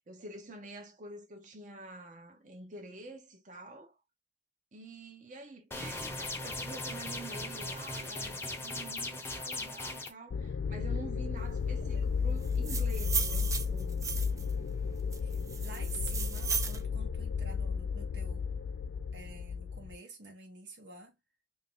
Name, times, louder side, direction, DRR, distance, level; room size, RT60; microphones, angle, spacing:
voice 1, 0.1-4.0 4.7-14.0, right 2 dB, 45° right, 0.8 m, -47 dB
sound 1, 5.7-10.1, left 2 dB, 15° left, 0.7 m, -38 dB
sound 2, 10.3-20.0, left 5 dB, 75° left, 0.4 m, -33 dB
sound 3, 12.4-14.5 15.1-16.8, right 6 dB, 20° right, 0.4 m, -35 dB
voice 2, 15.2-18.5 19.1-21.1, right 3 dB, 80° right, 1.0 m, -48 dB
2.9 x 2.7 x 3.7 m
head